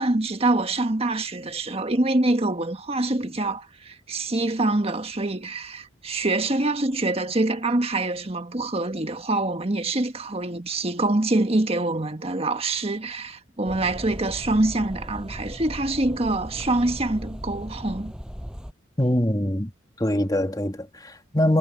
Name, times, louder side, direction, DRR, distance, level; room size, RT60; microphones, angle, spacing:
voice 1, 0.0-18.1, right 2 dB, 35° right, 1.5 m, -25 dB
sound 1, 13.6-18.7, equal, 5° right, 7.7 m, -37 dB
voice 2, 19.0-19.7 20.0-21.6, left 1 dB, 20° left, 2.1 m, -23 dB
head